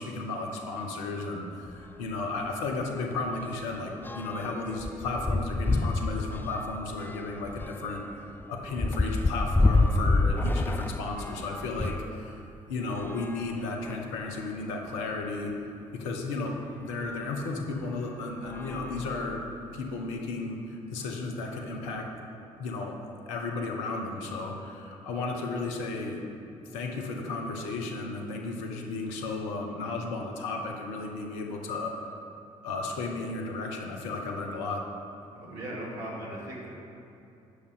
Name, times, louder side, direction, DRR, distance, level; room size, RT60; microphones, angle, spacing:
voice 1, 0.0-12.4 12.7-15.5 15.9-19.4 19.7-22.1 22.6-23.0 23.3-26.2 26.6-32.1 32.6-34.8, left 3 dB, 70° left, 2 dB, 1.1 m, -34 dB
sound 1, 1.7-1.9 2.2-2.4 2.7-12.1 12.9-14.2 14.9-15.0 15.2-15.3 17.0-17.1 17.8-18.1 18.4-19.7, left 2 dB, 10° left, 0.4 m, -29 dB
voice 2, 35.3-36.7, right 1 dB, 70° right, -5 dB, 2.4 m, -38 dB
10.0 x 6.8 x 5.0 m, 2.7 s
figure-of-eight pair, 45°, 18 cm